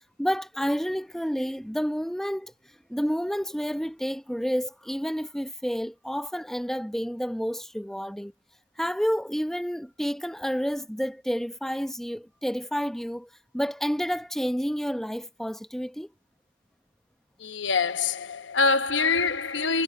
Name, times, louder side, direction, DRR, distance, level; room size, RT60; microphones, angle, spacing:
voice 1, 0.2-2.5 2.9-8.3 8.8-13.3 13.5-16.1, equal, ahead, 0.8 m, -29 dB
voice 2, 17.4-19.8, left 4 dB, 75° left, 1.0 m, -25 dB
head